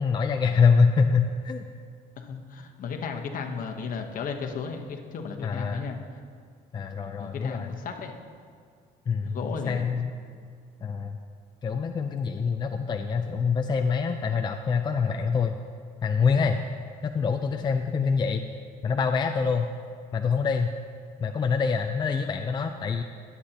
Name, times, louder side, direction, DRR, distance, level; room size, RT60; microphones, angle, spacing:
voice 1, 0.0-1.7 5.4-5.8 6.7-7.7 9.1-9.4 9.7-10.1 10.8-11.2 11.6-15.6 16.0-16.6 17.0-18.4 18.8-19.7 20.1-20.7 21.2-23.0, left 5 dB, 25° left, 5 dB, 0.4 m, -25 dB
voice 2, 2.2-6.0 7.1-8.2 9.2-9.9, left 5 dB, 55° left, 4 dB, 1.1 m, -34 dB
17.5 x 8.2 x 2.9 m, 2.1 s
cardioid pair, 110°, 17 cm